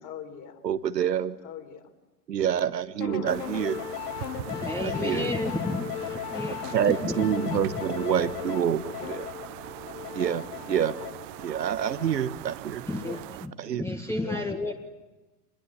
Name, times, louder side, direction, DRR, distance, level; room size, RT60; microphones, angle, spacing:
voice 1, 0.0-0.6 1.4-1.9 4.7-5.3 5.6-5.9 12.9-13.3 14.2-14.7, left 9 dB, 35° left, 5 dB, 4.1 m, -42 dB
voice 2, 0.6-1.4 2.3-3.8 4.8-5.3 6.7-9.3 10.1-10.9 11.4-12.8 13.6-13.8, right 9 dB, 85° right, 14 dB, 1.4 m, -27 dB
sound 1, 3.0-12.4, left 11 dB, 70° left, 1.4 m, -37 dB
sound 2, 3.3-13.5, right 16 dB, 50° right, 1.1 m, -41 dB
voice 3, 4.5-6.6 7.0-7.6 12.9-13.5 13.8-14.7, left 2 dB, 5° left, 2 dB, 1.8 m, -32 dB
26.0 x 21.0 x 9.9 m, 1.1 s
hypercardioid pair, 100°, 48 cm